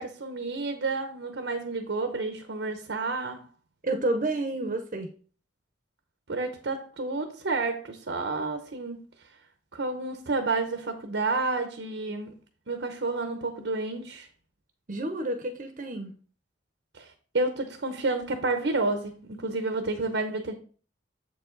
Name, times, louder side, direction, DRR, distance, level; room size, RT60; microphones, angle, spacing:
voice 1, 0.0-3.4 6.3-9.0 9.7-12.3 12.7-14.3 16.9-20.5, right 3 dB, 75° right, 0.8 m, -30 dB
voice 2, 3.8-5.1 14.9-16.2, right 2 dB, 45° right, 0.8 m, -30 dB
7.6 x 4.9 x 3.9 m
head